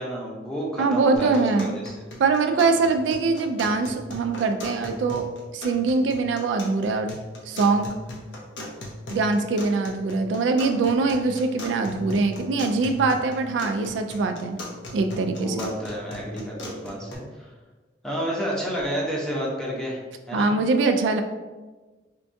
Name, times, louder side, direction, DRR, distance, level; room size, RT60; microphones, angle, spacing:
voice 1, 0.0-1.9 15.4-17.5 18.0-20.0 20.3-20.5, equal, 5° left, -4 dB, 0.6 m, -30 dB
voice 2, 0.8-1.8 2.2-5.3 5.5-7.1 7.5-7.9 9.1-14.6 14.9-15.7 20.3-21.2, right 3 dB, 85° right, 6 dB, 0.3 m, -23 dB
sound 1, 1.2-17.2, left 1 dB, 80° left, 0.7 m, -38 dB
4.4 x 2.2 x 2.6 m, 1.3 s
head